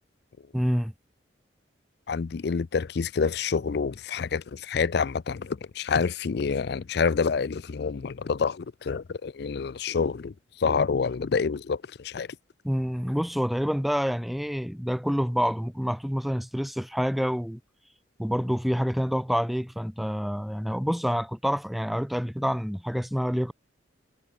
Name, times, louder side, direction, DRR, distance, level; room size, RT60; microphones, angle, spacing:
voice 1, 0.5-0.9 12.6-17.6 18.2-23.5, equal, ahead, 0.4 m, -27 dB
voice 2, 2.1-10.3 10.6-12.3, left 5 dB, 65° left, 0.5 m, -27 dB
head